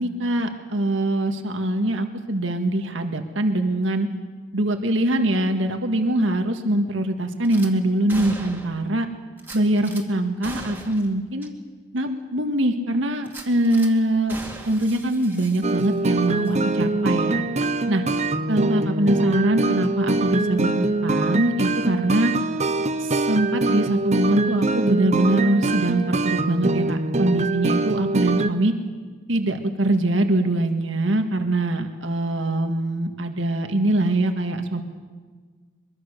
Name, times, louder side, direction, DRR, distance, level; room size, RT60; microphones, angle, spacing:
voice 1, 0.0-4.1 4.5-9.1 9.5-11.5 11.9-14.4 14.7-17.4 17.9-18.0 18.5-22.3 23.0-28.7 29.3-34.8, right 1 dB, 85° right, 5 dB, 1.8 m, -23 dB
Gunshot gunfire / Glass, 7.4-7.7 8.1-8.9 9.4-10.0 10.4-11.1 11.4-11.5 12.0-12.1 13.2-13.9 14.3-16.1 16.4-16.6, right 1 dB, 10° right, 2.3 m, -39 dB
sound 1, 15.6-28.5, right 2 dB, 35° right, 0.9 m, -24 dB
23.5 x 23.0 x 6.7 m, 1.5 s
head